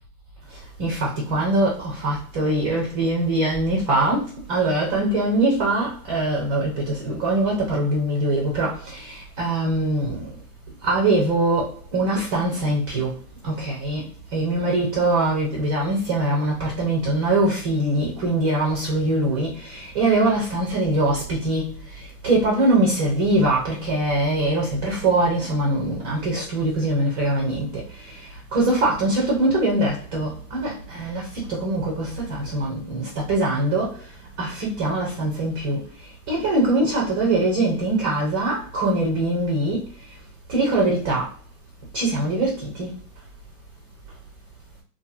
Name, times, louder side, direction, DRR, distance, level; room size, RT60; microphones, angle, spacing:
voice 1, 0.8-10.3 10.8-13.2 13.4-28.2 28.5-34.0 34.4-35.8 36.3-39.9 40.5-41.3 41.9-43.0, right 2 dB, 15° right, 0.4 m, -23 dB
2.8 x 2.5 x 2.4 m
hypercardioid pair, 130°, 49 cm